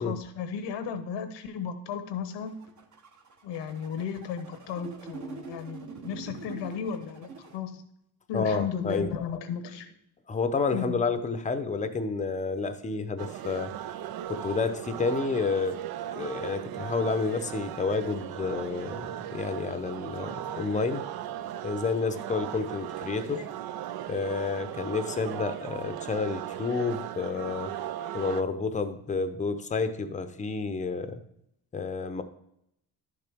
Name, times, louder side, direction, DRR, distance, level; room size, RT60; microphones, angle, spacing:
voice 1, 0.0-2.5 3.4-7.8 8.3-9.9 10.7-10.9, left 7 dB, 85° left, 9 dB, 1.0 m, -34 dB
sound 1, 2.3-7.6, right 4 dB, 45° right, 1.2 m, -44 dB
voice 2, 8.3-9.1 10.3-13.7 14.3-15.8 16.1-21.0 21.6-23.5 24.1-27.7 28.1-31.2 31.7-32.2, left 4 dB, 20° left, 9 dB, 0.6 m, -30 dB
sound 2, 13.2-28.4, right 11 dB, 60° right, 0.5 m, -37 dB
11.0 x 6.8 x 3.5 m, 0.77 s
cardioid pair, 115°, 42 cm